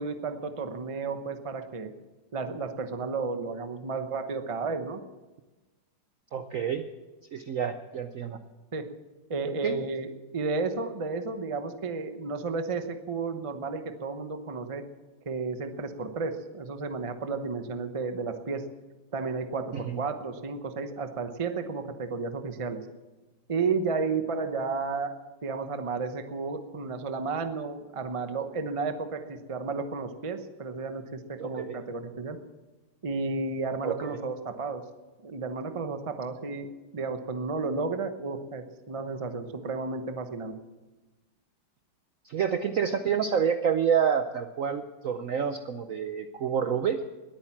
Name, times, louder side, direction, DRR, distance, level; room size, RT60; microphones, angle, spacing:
voice 1, 0.0-1.9 2.3-5.0 8.7-8.8 9.3-10.1 10.3-14.8 15.3-18.6 19.1-22.8 23.5-25.1 25.4-32.4 33.0-34.8 35.2-36.7 36.9-40.6, right 4 dB, 50° right, 7 dB, 0.4 m, -32 dB
voice 2, 6.3-6.8 7.3-8.4 9.6-9.8 19.7-20.0 31.4-31.8 33.8-34.2 42.2-47.0, right 7 dB, 70° right, 9 dB, 0.7 m, -28 dB
20.0 x 9.0 x 7.3 m, 1.2 s
omnidirectional pair, 2.2 m